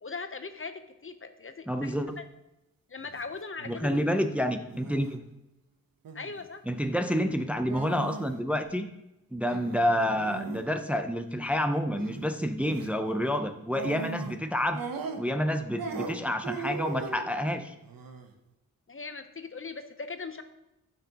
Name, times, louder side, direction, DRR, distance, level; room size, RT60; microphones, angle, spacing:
voice 1, 0.0-2.3 2.9-4.1 6.1-6.6 18.9-20.4, left 4 dB, 40° left, 9 dB, 0.8 m, -40 dB
voice 2, 1.7-2.1 3.7-5.2 6.7-8.9 9.3-14.8 15.2-17.7, equal, 5° right, 7 dB, 0.6 m, -29 dB
sound 1, 3.0-3.2 3.6-4.0 4.7-5.1 6.0-6.4 7.7-8.4 8.6-8.7 9.5-10.7 11.9-12.3 12.6-12.9 13.7-14.4 14.7-15.5 15.8-17.3 17.8-18.3, right 5 dB, 80° right, 0.9 m, -39 dB
9.8 x 5.8 x 2.9 m, 0.90 s
cardioid pair, 50°, 34 cm